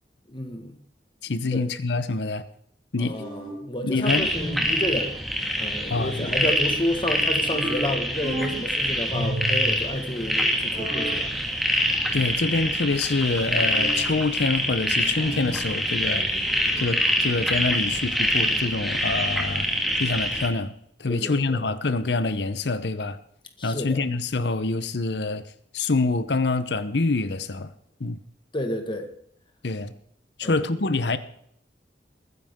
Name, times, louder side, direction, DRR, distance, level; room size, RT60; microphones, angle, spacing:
voice 1, 0.3-0.7 1.5-1.6 3.0-5.1 5.6-11.3 21.1-21.6 23.6-24.0 28.5-29.1 30.4-30.6, left 1 dB, 30° left, 1.7 m, -30 dB
voice 2, 1.2-2.4 2.9-3.2 3.8-4.3 5.9-6.3 12.1-16.3 16.8-19.7 20.0-20.7 21.0-23.2 23.6-25.4 25.7-27.7 28.0-28.2 29.6-29.9 30.4-31.2, left 3 dB, 70° left, 0.8 m, -26 dB
sound 1, 3.1-3.7 4.3-4.9 7.5-8.7 9.1-9.8 10.7-11.2 13.5-14.0 15.1-15.6, right 1 dB, 35° right, 5.9 m, -32 dB
sound 2, 4.1-20.5, equal, ahead, 2.0 m, -25 dB
22.0 x 9.8 x 3.7 m
head